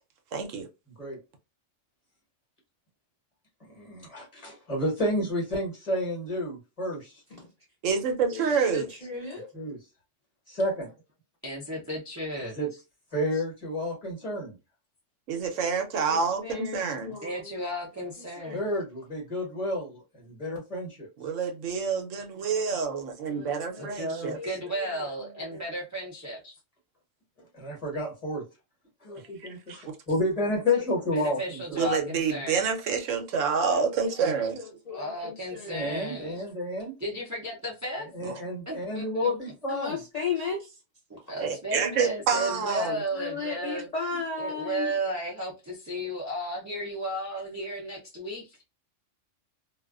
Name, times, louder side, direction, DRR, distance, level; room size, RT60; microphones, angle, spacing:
voice 1, 0.3-0.7 7.8-8.9 15.3-17.2 21.2-24.4 29.7-29.8 31.8-34.6 38.2-38.3 41.4-43.0, right 5 dB, 75° right, 1.0 m, -28 dB
voice 2, 3.7-7.2 9.5-9.8 10.5-10.9 12.4-12.7 13.1-14.5 18.5-21.1 27.5-28.4 29.0-31.9 35.7-37.0 38.1-40.0, left 1 dB, 30° left, 1.2 m, -30 dB
voice 3, 8.3-9.5 15.9-17.6 18.4-18.6 23.3-24.0 24.3-24.5 24.7-25.0 25.5-25.6 30.7-30.8 34.0-34.1 34.5-35.9 39.7-40.7 43.1-44.9, left 5 dB, 45° left, 0.5 m, -36 dB
voice 4, 11.4-12.5 13.3-13.4 17.2-18.6 23.8-26.6 31.1-32.6 34.9-36.4 37.0-38.1 38.7-39.3 40.4-40.5 41.1-43.9 44.4-48.6, right 1 dB, 25° right, 0.4 m, -34 dB
2.4 x 2.3 x 2.3 m
omnidirectional pair, 1.3 m